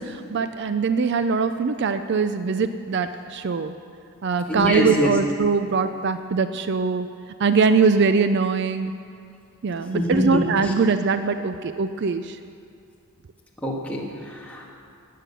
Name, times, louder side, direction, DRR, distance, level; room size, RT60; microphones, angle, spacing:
voice 1, 0.0-3.7 4.2-7.1 7.4-8.9 9.6-12.4, right 5 dB, 50° right, 10 dB, 0.4 m, -22 dB
voice 2, 4.5-5.1 9.9-10.7 13.6-14.8, left 1 dB, 5° left, -3 dB, 1.8 m, -25 dB
19.0 x 7.6 x 6.9 m, 2.4 s
head